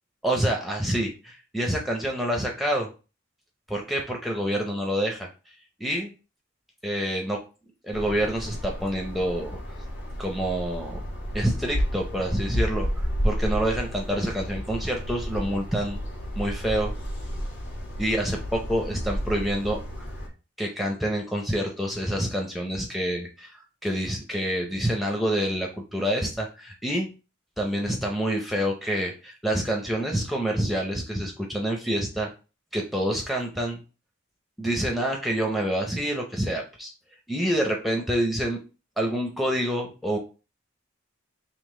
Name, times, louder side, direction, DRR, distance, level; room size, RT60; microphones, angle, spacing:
voice 1, 0.2-2.9 3.7-5.3 5.8-6.1 6.8-7.4 7.8-9.8 10.2-11.0 11.3-16.0 16.3-16.9 18.0-20.1 20.6-27.1 27.6-32.3 32.7-33.8 34.6-36.9 37.3-38.6 39.0-40.2, right 1 dB, ahead, 0 dB, 0.5 m, -27 dB
sound 1, 7.9-20.3, equal, 80° left, 1.5 m, -31 dB
3.7 x 2.9 x 3.7 m, 0.33 s
head